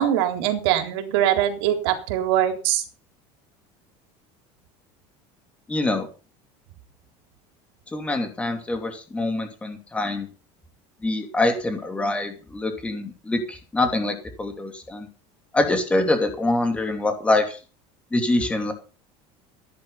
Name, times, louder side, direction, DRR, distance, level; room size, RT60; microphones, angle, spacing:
voice 1, 0.0-2.8, right 11 dB, 85° right, 6 dB, 3.6 m, -22 dB
voice 2, 5.7-6.1 7.9-10.3 11.0-15.1 15.5-17.6 18.1-18.7, left 2 dB, 10° left, 5 dB, 2.8 m, -24 dB
15.5 x 11.0 x 5.7 m, 0.34 s
cardioid pair, 175°, 13 cm